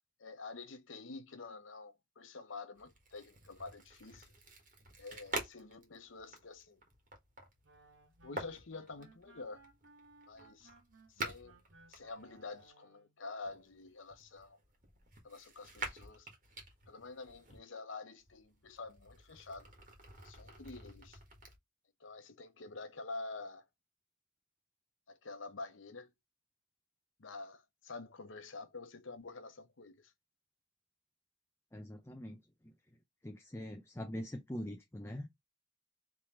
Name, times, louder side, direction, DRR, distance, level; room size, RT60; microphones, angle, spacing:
voice 1, 0.2-4.3 5.0-6.8 8.2-9.6 10.3-10.7 11.1-11.6 11.9-14.6 15.2-16.3 16.9-19.7 20.2-21.2 22.0-23.7 25.1-26.1 27.2-30.1, left 3 dB, 80° left, 0.8 m, -48 dB
sound 1, 2.7-12.7 13.4-17.6 18.2-21.5, right 2 dB, 40° right, 1.4 m, -48 dB
sound 2, 7.6-13.2, right 3 dB, 85° right, 1.2 m, -63 dB
voice 2, 31.7-32.7 33.2-35.5, equal, 15° left, 0.4 m, -44 dB
3.7 x 3.1 x 4.3 m
head